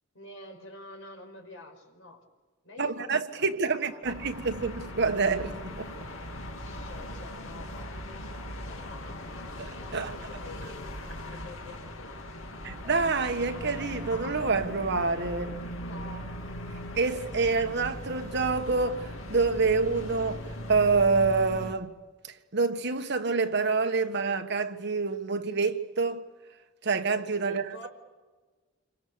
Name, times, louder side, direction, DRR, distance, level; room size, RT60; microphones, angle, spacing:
voice 1, 0.1-2.2 2.6-3.1 3.4-4.4 6.5-9.4 10.0-11.0 11.2-12.5 15.8-16.3 27.4-27.9, left 2 dB, 75° left, 5.7 m, -48 dB
voice 2, 2.8-5.9 9.6-10.2 12.6-15.6 16.9-21.9 22.2-26.2 26.8-27.6, right 4 dB, 60° right, 1.6 m, -27 dB
sound 1, 4.0-21.7, left 1 dB, 90° left, 2.6 m, -39 dB
sound 2, 12.6-18.5, right 3 dB, 20° right, 3.5 m, -52 dB
28.0 x 24.5 x 7.1 m
head